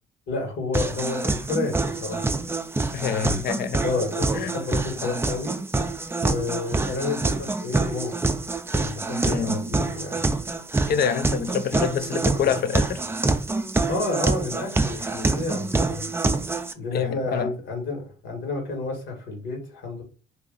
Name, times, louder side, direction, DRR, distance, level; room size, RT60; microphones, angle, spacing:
voice 1, 0.3-2.3 3.8-5.6 6.2-8.4 8.7-10.2 12.3-12.5 13.9-16.1 16.7-20.0, left 3 dB, 75° left, 1.6 m, -30 dB
sound 1, 0.7-16.7, right 3 dB, 10° right, 0.4 m, -26 dB
voice 2, 2.9-3.8 4.3-4.5 5.0-5.1 9.3-9.6 10.9-13.0 16.9-17.5, left 8 dB, 55° left, 0.4 m, -26 dB
2.8 x 2.7 x 3.8 m
cardioid pair, 90°, 20 cm